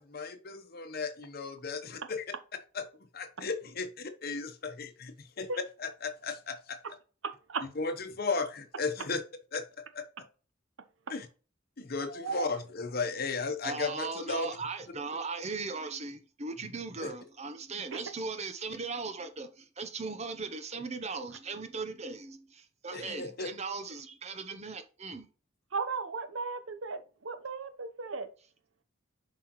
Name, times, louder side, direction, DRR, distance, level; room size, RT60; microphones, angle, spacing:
voice 1, 0.1-2.2 2.7-2.8 3.1-5.5 5.8-6.8 7.8-9.2 9.5-10.0 11.1-11.3 11.8-14.6 17.0-17.1 22.9-23.5, left 4 dB, 50° left, 1.0 m, -35 dB
voice 2, 7.2-7.6 12.2-12.4 25.7-28.3, right 4 dB, 85° right, 0.9 m, -35 dB
voice 3, 13.6-25.3, right 4 dB, 35° right, 0.8 m, -38 dB
7.7 x 4.9 x 3.1 m
head